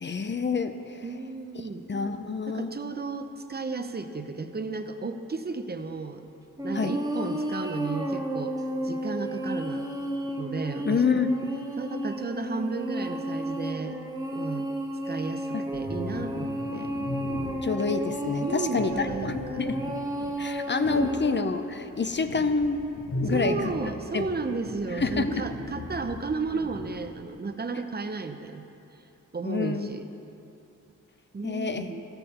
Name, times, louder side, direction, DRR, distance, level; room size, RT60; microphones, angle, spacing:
voice 1, 0.0-1.0 1.9-2.7 6.7-6.9 10.8-11.3 15.5-15.6 17.6-19.8 20.4-22.8 23.2-23.7 24.1-24.3 25.0-25.5 29.4-29.9 31.4-31.9, left 4 dB, 35° left, 9 dB, 0.6 m, -27 dB
voice 2, 1.0-1.9 2.5-6.3 6.6-8.6 8.8-9.9 10.3-11.2 11.8-14.0 14.3-14.7 15.1-16.9 18.4-19.7 21.0-21.1 23.2-28.6 29.3-30.1 31.3-32.0, right 4 dB, 30° right, 7 dB, 0.7 m, -33 dB
sound 1, 6.6-21.3, right 1 dB, 10° right, 1.2 m, -32 dB
sound 2, 15.7-17.7 18.2-20.3 20.8-21.2 21.7-23.9 24.2-27.0, left 2 dB, 50° left, 1.8 m, -36 dB
13.5 x 6.8 x 4.3 m, 2.8 s
cardioid pair, 50°, 34 cm